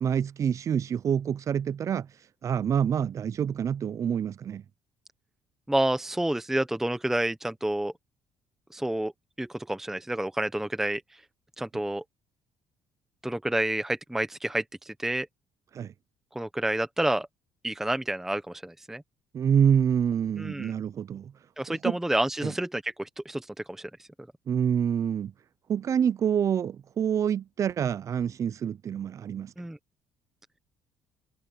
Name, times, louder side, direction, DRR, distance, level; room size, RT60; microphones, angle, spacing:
voice 1, 0.0-2.1 2.4-4.6 15.7-15.9 19.3-21.3 21.7-22.0 22.4-22.5 24.5-25.3 25.7-29.5, right 8 dB, 40° right, 0.5 m, -27 dB
voice 2, 5.7-7.9 8.7-9.1 9.4-11.0 11.6-12.0 13.2-15.3 16.3-17.3 17.6-19.0 20.4-20.7 21.6-23.4 23.7-23.9 29.6-29.8, right 1 dB, 5° right, 0.8 m, -29 dB
cardioid pair, 135°, 9 cm